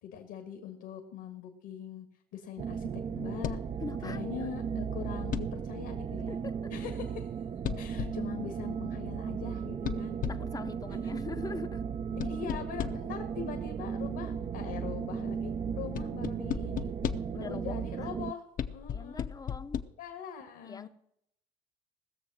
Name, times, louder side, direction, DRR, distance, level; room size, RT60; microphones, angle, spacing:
voice 1, 0.0-2.1 2.3-3.6 4.0-6.4 6.7-7.3 7.8-10.2 12.2-16.9 17.3-18.4 18.7-19.2 20.0-20.9, left 8 dB, 70° left, 1.8 m, -42 dB
sound 1, 2.6-18.3, right 7 dB, 30° right, 0.5 m, -36 dB
sound 2, 3.4-3.8 5.3-5.7 7.6-8.3 9.8-10.6 12.2-13.2 15.9-17.4 18.6-19.8, left 8 dB, 45° left, 0.8 m, -35 dB
voice 2, 3.8-4.2 6.3-6.7 10.3-11.8 17.3-18.1 18.9-19.8 20.6-20.9, left 4 dB, 20° left, 0.7 m, -42 dB
18.5 x 6.9 x 6.3 m
hypercardioid pair, 70°, 20 cm